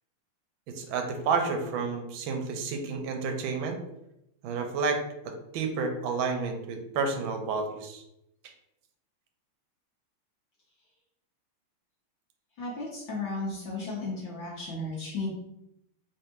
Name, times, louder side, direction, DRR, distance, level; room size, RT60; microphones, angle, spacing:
voice 1, 0.7-3.8 4.4-8.0, right 4 dB, 75° right, 4 dB, 1.3 m, -30 dB
voice 2, 12.6-15.3, left 2 dB, 65° left, -5 dB, 1.4 m, -34 dB
3.4 x 3.3 x 2.9 m, 0.84 s
omnidirectional pair, 2.4 m